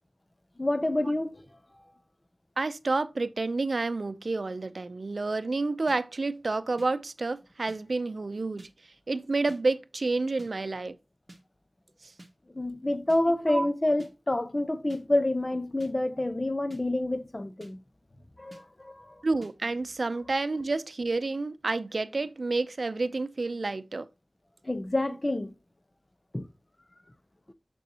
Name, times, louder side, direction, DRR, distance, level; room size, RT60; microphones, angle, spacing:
voice 1, 0.6-1.4 12.5-17.8 18.4-19.2 24.6-25.5 26.3-26.5, left 1 dB, 35° left, 0.9 m, -28 dB
voice 2, 2.6-8.7 9.1-11.0 13.5-13.7 19.2-24.1, right 3 dB, 80° right, 0.5 m, -29 dB
sound 1, 5.9-6.0 6.8-6.9 7.7-7.8 8.6-8.7 9.5-9.6 10.4-10.5 11.3-11.4 12.2-12.3 13.1-13.2 14.0-14.1 14.9-15.0 15.8-15.9 16.7-16.8 17.6-17.7 18.5-18.6 19.4-19.5, right 1 dB, 45° right, 1.7 m, -49 dB
6.7 x 6.3 x 2.8 m
wide cardioid pair, 50°, 0 cm